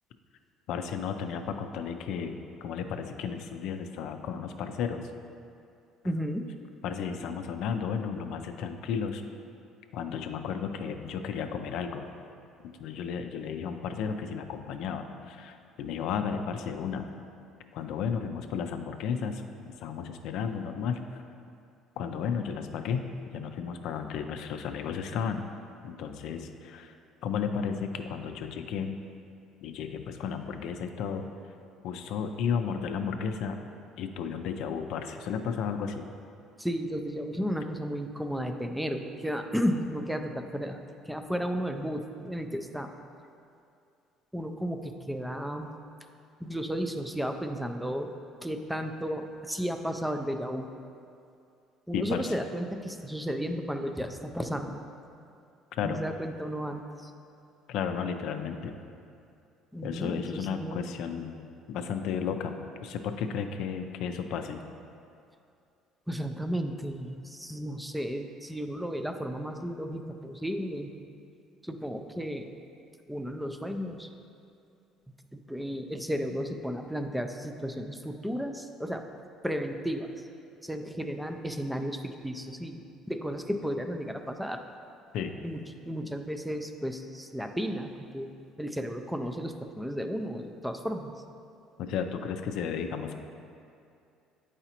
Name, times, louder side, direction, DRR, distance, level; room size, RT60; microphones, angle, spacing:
voice 1, 0.7-5.1 6.8-9.2 9.9-12.1 12.6-17.1 17.7-21.2 22.0-25.5 25.8-26.9 27.2-29.0 29.6-31.3 31.8-33.6 34.0-36.1 51.9-52.2 55.7-56.0 57.7-58.8 59.8-61.4 61.7-62.6 62.8-64.6 85.1-85.4 91.8-93.1, left 6 dB, 70° left, 6 dB, 0.4 m, -33 dB
voice 2, 6.0-6.5 36.6-42.9 44.3-45.7 46.4-48.1 48.4-50.7 51.9-54.8 55.8-57.1 59.7-60.8 66.1-70.9 71.6-72.5 73.1-74.1 75.3-79.0 79.4-80.3 80.6-82.8 83.1-84.6 85.4-85.6 85.9-88.3 88.6-91.1, equal, 5° right, 6 dB, 0.4 m, -33 dB
7.9 x 4.8 x 2.9 m, 2.5 s
cardioid pair, 120°, 0 cm